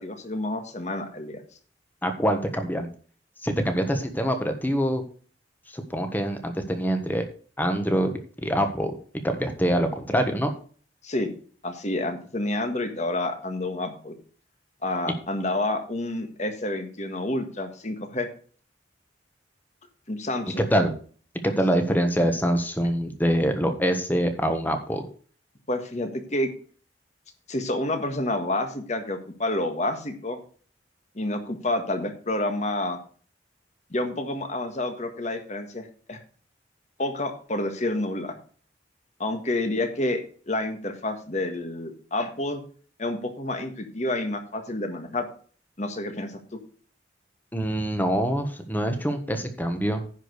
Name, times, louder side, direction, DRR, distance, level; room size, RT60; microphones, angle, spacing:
voice 1, 0.0-1.4 11.0-11.3 11.6-14.1 14.8-18.3 20.1-20.7 25.7-26.5 27.5-30.4 31.1-33.0 33.9-36.2 37.0-38.3 39.2-42.6 43.0-45.3 45.8-46.6, left 1 dB, 40° left, 6 dB, 1.6 m, -29 dB
voice 2, 2.0-2.9 3.4-5.0 5.7-7.2 7.6-8.1 8.4-9.0 9.2-10.5 20.7-20.9 21.6-25.1 47.5-50.0, equal, 10° left, 6 dB, 1.3 m, -25 dB
10.0 x 5.0 x 6.5 m, 0.43 s
head